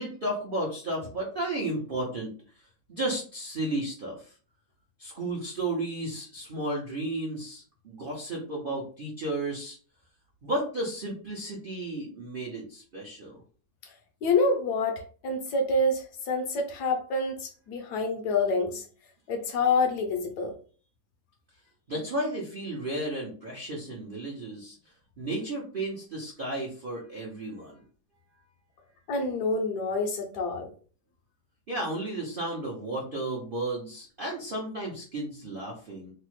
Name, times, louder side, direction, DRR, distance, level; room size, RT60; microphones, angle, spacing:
voice 1, 0.0-2.3 2.9-4.3 5.0-9.8 10.4-13.4 21.9-24.8 25.2-27.8 31.7-36.1, right 1 dB, 65° right, -3 dB, 0.5 m, -33 dB
voice 2, 14.2-18.8 19.3-20.5 29.1-30.7, left 3 dB, 70° left, 4 dB, 1.1 m, -27 dB
3.2 x 2.0 x 3.1 m, 0.40 s
omnidirectional pair, 2.0 m